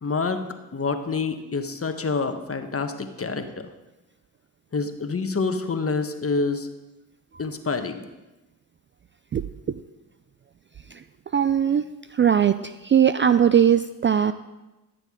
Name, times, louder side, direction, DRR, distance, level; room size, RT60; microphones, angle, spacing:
voice 1, 0.0-0.4 0.7-3.7 4.7-6.7 7.4-8.0, left 4 dB, 30° left, 7 dB, 1.2 m, -27 dB
voice 2, 11.3-11.8 12.1-12.5 12.8-14.3, right 8 dB, 30° right, 11 dB, 0.4 m, -19 dB
13.5 x 6.7 x 3.8 m, 1.0 s
hypercardioid pair, 40°, 43 cm